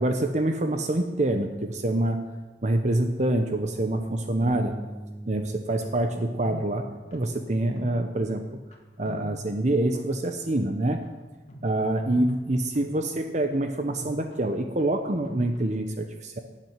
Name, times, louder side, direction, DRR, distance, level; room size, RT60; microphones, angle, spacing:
voice 1, 0.0-2.3 2.6-4.8 5.3-8.6 9.0-11.1 11.6-16.4, right 1 dB, 40° right, 6 dB, 0.9 m, -26 dB
Bass guitar, 4.4-10.7, right 1 dB, 15° right, 1.9 m, -44 dB
sound 1, 5.8-8.8 9.1-9.9 10.2-15.8, equal, 40° left, 1.9 m, -45 dB
12.0 x 7.6 x 9.6 m, 1.2 s
head